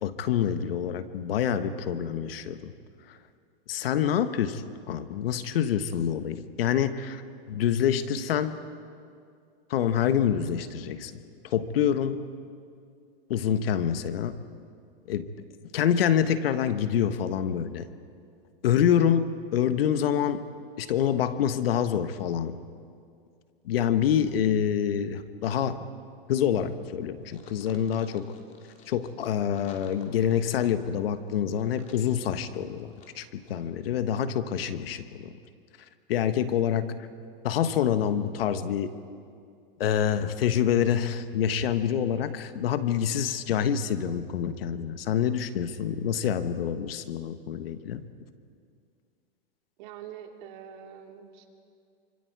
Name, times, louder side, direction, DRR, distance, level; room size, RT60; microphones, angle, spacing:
voice 1, 0.0-2.7 3.1-3.2 3.7-7.2 7.5-8.6 9.7-12.2 13.3-14.4 15.1-15.3 15.7-17.9 18.6-20.4 20.8-22.6 23.6-25.8 26.3-28.3 28.9-35.3 36.1-36.8 37.4-38.9 39.8-48.1, left 9 dB, 75° left, 10 dB, 1.4 m, -26 dB
sound 1, 27.3-33.2 33.4-33.5, left 5 dB, 25° left, 2.6 m, -52 dB
voice 2, 49.8-51.5, right 9 dB, 50° right, 3 dB, 2.6 m, -44 dB
27.0 x 25.0 x 4.7 m, 2.3 s
supercardioid pair, 140°, 30 cm